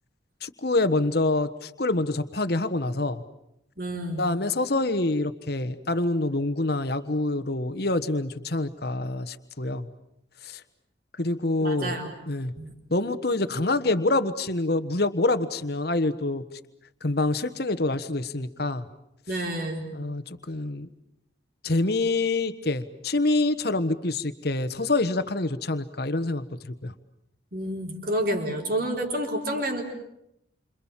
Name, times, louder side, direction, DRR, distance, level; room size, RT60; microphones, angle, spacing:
voice 1, 0.4-3.2 4.2-9.9 10.4-10.6 11.2-12.0 12.3-12.5 12.9-16.4 17.0-18.9 19.9-20.9 21.6-26.5 26.8-26.9, left 2 dB, 55° left, 10 dB, 1.3 m, -26 dB
voice 2, 3.8-4.3 11.6-12.1 12.6-12.7 19.3-19.8 27.5-29.8, right 1 dB, 50° right, 3 dB, 4.3 m, -29 dB
29.0 x 26.5 x 7.4 m, 0.80 s
head